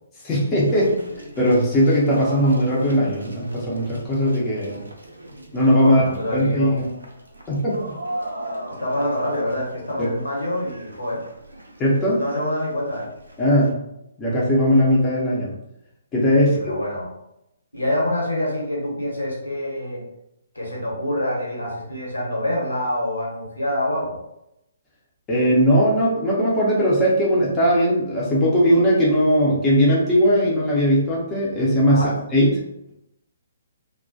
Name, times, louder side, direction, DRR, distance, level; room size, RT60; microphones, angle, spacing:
voice 1, 0.2-1.0 1.4-4.8 5.5-6.0 6.3-6.9 7.5-7.9 10.0-10.1 11.8-12.2 13.4-13.8 14.2-15.5 16.1-16.6 25.3-32.5, equal, 15° left, -6 dB, 0.7 m, -19 dB
sound 1, 0.7-13.7, right 1 dB, 80° right, 0.5 m, -38 dB
voice 2, 5.8-6.8 8.8-11.2 12.1-13.1 16.4-17.1 17.7-20.0 20.5-24.2 31.9-32.2, left 1 dB, 80° left, -3 dB, 1.1 m, -26 dB
2.3 x 2.1 x 2.6 m, 0.82 s
figure-of-eight pair, 130°, 0 cm